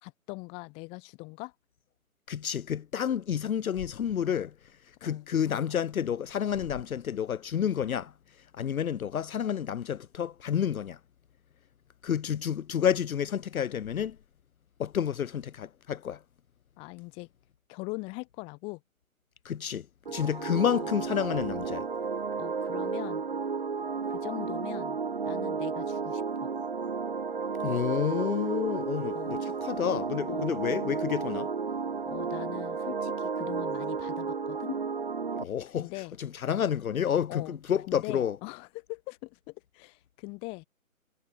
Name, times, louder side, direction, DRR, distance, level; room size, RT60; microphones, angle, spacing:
voice 1, 0.0-1.5 5.0-5.3 16.8-17.3 17.7-18.8 20.2-20.9 22.4-23.2 24.0-25.0 25.2-26.5 29.1-29.4 30.3-30.5 32.0-34.8 35.7-36.1 37.3-37.6 37.9-40.7, left 28 dB, 15° left, 3.0 m, -41 dB
voice 2, 2.3-4.5 5.0-8.1 8.5-11.0 12.0-14.2 14.8-16.2 19.4-21.9 27.6-31.5 35.4-38.4, left 8 dB, 80° left, 0.5 m, -30 dB
sound 1, 20.1-35.4, right 5 dB, 40° right, 0.6 m, -32 dB
figure-of-eight pair, 150°, 42 cm